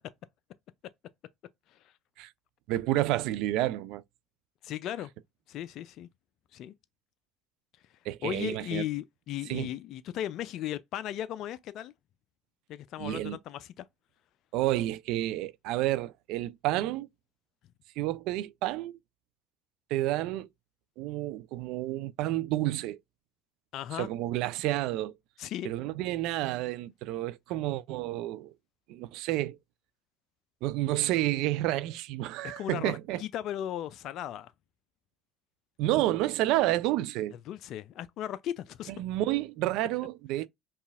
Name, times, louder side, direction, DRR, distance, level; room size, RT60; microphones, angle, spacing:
voice 1, 2.7-4.0 8.1-8.9 9.5-9.7 13.0-13.4 14.5-17.1 18.0-19.0 19.9-20.5 21.0-23.0 24.0-25.1 25.6-28.5 28.9-29.6 30.6-33.2 35.8-37.3 39.0-40.5, right 15 dB, 65° right, 0.3 m, -30 dB
voice 2, 4.6-5.1 5.5-6.1 6.5-6.7 8.2-11.9 12.7-13.9 23.7-24.1 25.4-25.7 32.4-34.5 37.5-38.9, left 11 dB, 60° left, 0.3 m, -36 dB
5.4 x 2.3 x 2.4 m
hypercardioid pair, 65°, 0 cm